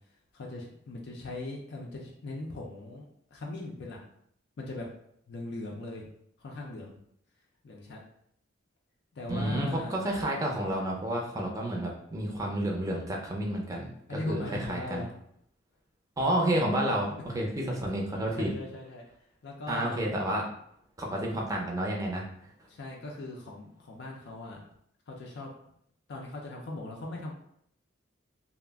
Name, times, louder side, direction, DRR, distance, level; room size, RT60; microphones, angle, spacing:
voice 1, 0.3-3.1 3.3-4.0 4.6-4.9 5.3-6.1 6.4-6.9 7.6-8.0 9.1-10.0 14.1-15.1 17.3-17.4 18.4-19.0 19.4-20.0 22.7-24.6 25.1-25.5 26.1-27.3, left 2 dB, 60° left, -1 dB, 0.4 m, -39 dB
voice 2, 9.3-15.1 16.2-18.5 19.7-20.4 21.0-22.3, right 1 dB, 20° right, -1 dB, 0.5 m, -30 dB
2.3 x 2.0 x 3.4 m, 0.69 s
head